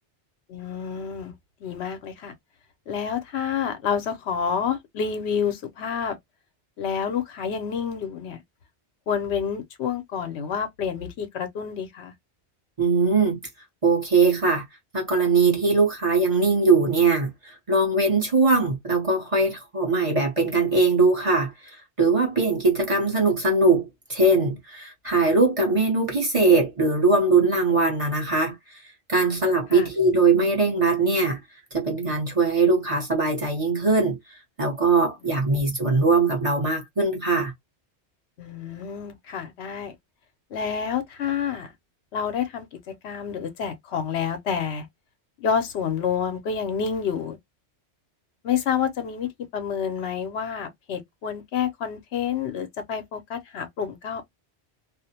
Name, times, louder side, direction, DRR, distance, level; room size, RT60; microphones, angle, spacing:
voice 1, 0.5-1.3 1.6-2.3 2.9-6.2 6.8-8.4 9.1-12.1 29.7-29.9 35.2-35.4 38.4-39.9 40.5-41.7 42.1-44.9 45.4-47.4 48.4-54.2, left 7 dB, 75° left, 0.9 m, -28 dB
voice 2, 12.8-13.4 13.8-14.7 14.9-28.8 29.1-31.4 31.7-34.2 34.6-37.5, right 3 dB, 35° right, 0.8 m, -21 dB
2.4 x 2.1 x 2.7 m
omnidirectional pair, 1.1 m